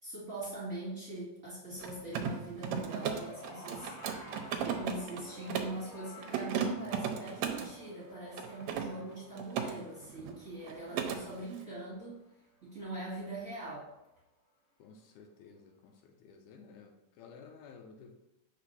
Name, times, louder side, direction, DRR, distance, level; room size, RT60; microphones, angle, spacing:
voice 1, 0.0-12.2 12.6-13.9, right 1 dB, 35° right, -7 dB, 1.5 m, -42 dB
Mechanisms, 1.7-5.8 6.2-7.7 8.3-9.7 10.0-10.4 10.6-11.2, right 7 dB, 75° right, 1.7 m, -36 dB
sound 1, 2.6-13.1 14.1-14.2, equal, 45° left, 1.3 m, -53 dB
voice 2, 14.8-18.1, left 5 dB, 80° left, 4 dB, 2.1 m, -54 dB
4.9 x 4.2 x 5.4 m, 0.89 s
omnidirectional pair, 3.6 m